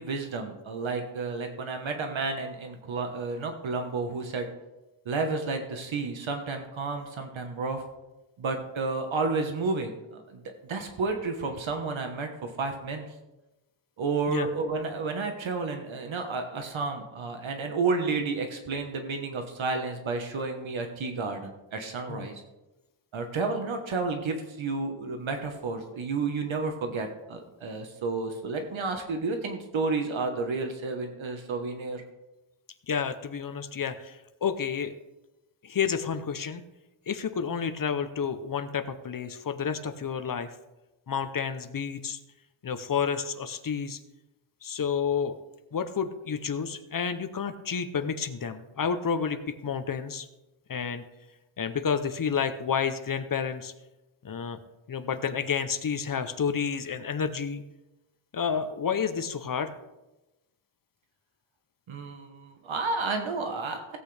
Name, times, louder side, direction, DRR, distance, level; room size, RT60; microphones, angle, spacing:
voice 1, 0.0-4.5 5.0-7.8 8.4-10.4 10.7-13.1 14.0-22.4 23.1-32.0 61.9-64.0, right 3 dB, 70° right, 5 dB, 1.3 m, -31 dB
voice 2, 32.9-34.9 35.6-36.6 37.1-40.5 41.1-42.2 42.6-44.0 44.6-45.4 45.7-50.3 50.7-51.0 51.6-53.7 54.2-54.6 54.9-57.6 58.3-59.7, left 6 dB, 45° left, 11 dB, 0.7 m, -30 dB
16.5 x 8.4 x 3.3 m, 1.0 s
wide cardioid pair, 150°, 49 cm